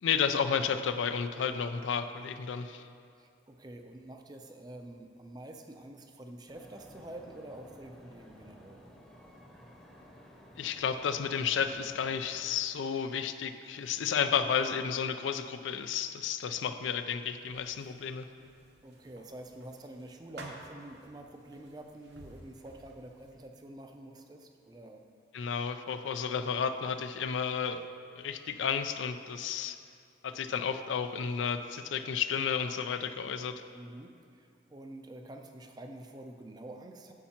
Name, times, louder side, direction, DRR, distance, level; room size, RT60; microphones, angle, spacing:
voice 1, 0.0-2.8 10.6-18.3 25.3-27.8 28.2-29.8 30.2-33.6, left 7 dB, 85° left, 9 dB, 0.4 m, -32 dB
voice 2, 3.2-8.8 18.8-25.0 33.7-37.1, right 1 dB, 20° right, 4 dB, 0.4 m, -47 dB
sound 1, 6.5-12.5, equal, 5° left, 0.8 m, -54 dB
sound 2, 17.4-23.5, right 2 dB, 65° right, 0.9 m, -53 dB
9.9 x 7.3 x 2.9 m, 2.3 s
head